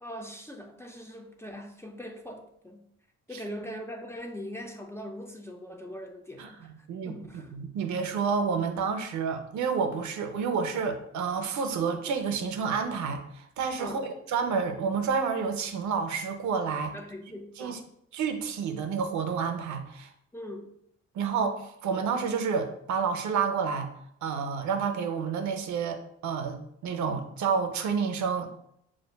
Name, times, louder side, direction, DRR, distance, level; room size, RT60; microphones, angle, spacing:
voice 1, 0.0-2.8 3.3-7.5 13.8-14.1 16.9-17.8 20.3-20.7, equal, 10° left, 3 dB, 0.5 m, -41 dB
voice 2, 7.5-14.0 14.3-16.9 17.6-17.8 18.1-20.1 21.1-23.9 24.2-28.5, right 6 dB, 70° right, 6 dB, 0.6 m, -29 dB
6.4 x 2.5 x 2.2 m, 0.72 s
cardioid pair, 90°, 30 cm